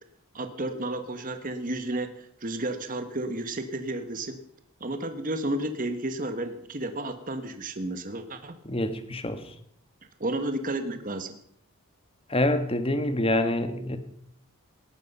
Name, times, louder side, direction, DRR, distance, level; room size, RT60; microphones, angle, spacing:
voice 1, 0.3-4.4 4.8-8.5 10.2-11.4, right 1 dB, 40° right, 1.4 m, -32 dB
voice 2, 8.6-9.4 12.3-14.0, left 1 dB, 25° left, 1.5 m, -26 dB
19.0 x 14.0 x 5.5 m
head